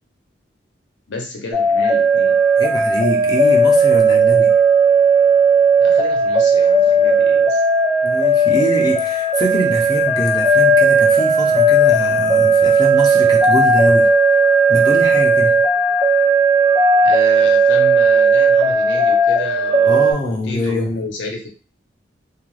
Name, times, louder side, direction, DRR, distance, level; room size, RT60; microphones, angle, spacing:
voice 1, 1.1-2.4 5.8-7.6 8.5-8.6 17.0-21.5, left 2 dB, 75° left, 1 dB, 0.7 m, -31 dB
sound 1, 1.5-20.1, right 2 dB, 25° right, 0.7 m, -15 dB
voice 2, 2.6-4.6 8.0-14.1 14.7-15.7 19.9-21.0, left 1 dB, 20° left, -1 dB, 0.5 m, -23 dB
2.4 x 2.2 x 3.1 m, 0.36 s
head